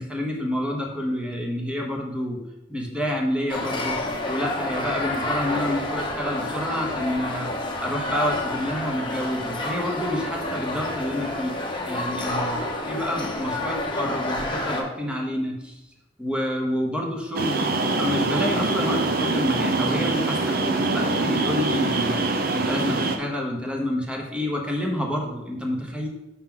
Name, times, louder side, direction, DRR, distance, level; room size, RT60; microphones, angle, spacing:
voice 1, 0.0-2.4 2.7-7.5 7.8-11.6 11.9-12.6 12.9-15.8 16.2-17.6 18.0-26.1, left 1 dB, 5° right, 0 dB, 1.0 m, -28 dB
sound 1, 3.5-14.8, left 1 dB, 25° left, 0.9 m, -29 dB
sound 2, 17.3-23.2, right 2 dB, 55° right, 0.6 m, -24 dB
5.8 x 5.6 x 3.8 m, 0.98 s
head